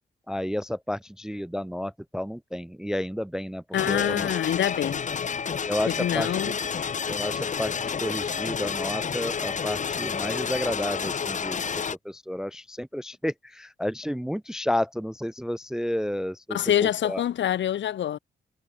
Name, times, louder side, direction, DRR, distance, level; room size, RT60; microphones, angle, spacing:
voice 1, 0.3-4.3 5.7-6.5 7.1-17.2, left 1 dB, 5° right, 0.3 m, -31 dB
voice 2, 3.7-5.0 5.9-6.6 16.5-18.2, left 11 dB, 80° left, 1.6 m, -26 dB
sound 1, 3.7-11.9, left 6 dB, 40° left, 1.1 m, -30 dB
cardioid pair, 105°, 19 cm